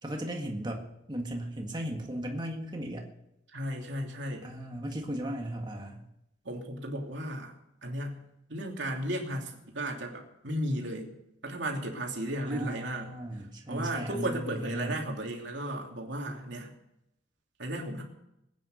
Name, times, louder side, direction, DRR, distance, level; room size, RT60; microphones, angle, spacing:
voice 1, 0.0-3.1 4.4-6.0 12.5-15.0, right 1 dB, 25° right, 2 dB, 1.8 m, -36 dB
voice 2, 3.5-4.5 6.4-7.5 7.8-8.2 8.5-11.1 11.4-13.1 13.7-16.7 17.6-18.0, right 1 dB, 70° right, 1 dB, 2.9 m, -34 dB
21.0 x 9.4 x 6.6 m, 0.84 s
head